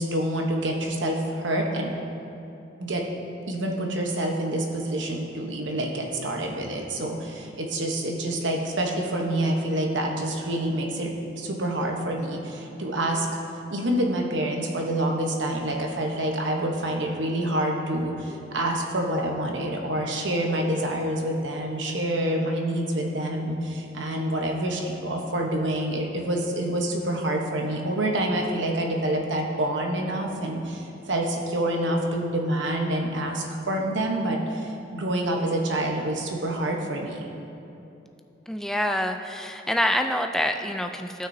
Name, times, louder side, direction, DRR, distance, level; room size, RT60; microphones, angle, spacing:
voice 1, 0.0-1.9 2.8-3.0 3.5-13.4 13.7-37.3, right 1 dB, 75° right, 1 dB, 1.0 m, -27 dB
voice 2, 38.5-41.3, equal, ahead, 5 dB, 0.3 m, -26 dB
15.5 x 5.9 x 2.7 m, 2.8 s
head